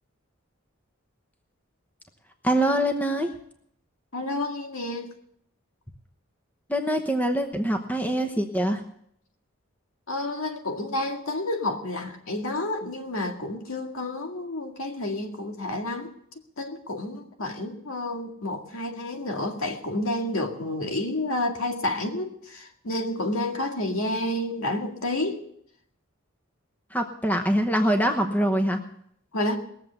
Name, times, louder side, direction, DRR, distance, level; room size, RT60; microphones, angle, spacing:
voice 1, 2.4-3.3 6.7-8.8 26.9-28.8, right 1 dB, 5° left, 5 dB, 1.0 m, -24 dB
voice 2, 4.1-5.1 10.1-16.1 16.6-25.4 29.3-29.6, left 1 dB, 80° left, 3 dB, 2.0 m, -30 dB
19.5 x 7.5 x 6.9 m, 0.70 s
head